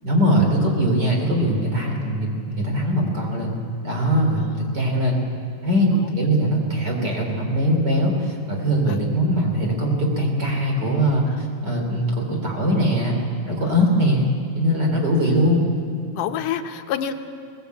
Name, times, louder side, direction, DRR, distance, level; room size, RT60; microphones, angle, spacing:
voice 1, 0.0-3.5 3.8-5.2 5.6-13.2 13.5-14.3 14.6-15.7, equal, 30° right, 1 dB, 3.7 m, -21 dB
voice 2, 4.3-4.7 5.9-6.2 8.9-9.0 11.3-11.5 13.6-14.1 15.0-15.4 16.1-17.1, left 9 dB, 80° left, 7 dB, 2.4 m, -30 dB
22.0 x 18.5 x 8.2 m, 2.2 s
omnidirectional pair, 3.7 m